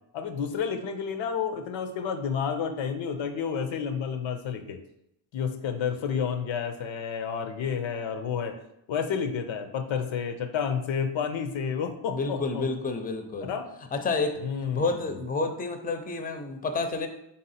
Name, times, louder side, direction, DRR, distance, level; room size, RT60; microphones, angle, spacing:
voice 1, 0.1-4.8 5.3-8.5 8.9-12.7 13.4-13.6 14.4-14.9, left 7 dB, 90° left, 7 dB, 0.6 m, -30 dB
voice 2, 12.1-13.5 13.9-14.4 14.7-17.1, left 3 dB, 20° left, 6 dB, 0.4 m, -29 dB
3.5 x 2.8 x 4.0 m, 0.80 s
cardioid pair, 85°, 44 cm